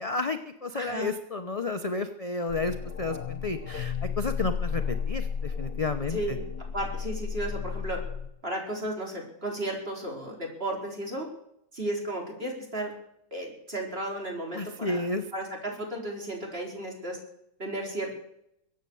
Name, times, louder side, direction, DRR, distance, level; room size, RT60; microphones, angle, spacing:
voice 1, 0.0-6.4 14.5-15.3, left 3 dB, 35° left, 7 dB, 0.6 m, -31 dB
voice 2, 0.7-1.1 6.1-6.4 6.7-8.0 8.4-11.3 11.7-12.9 13.3-15.0 15.3-17.2 17.6-18.2, right 1 dB, 35° right, 0 dB, 4.5 m, -34 dB
sound 1, 2.5-8.3, left 6 dB, 65° left, 1.7 m, -33 dB
22.5 x 8.8 x 7.1 m, 0.77 s
omnidirectional pair, 1.8 m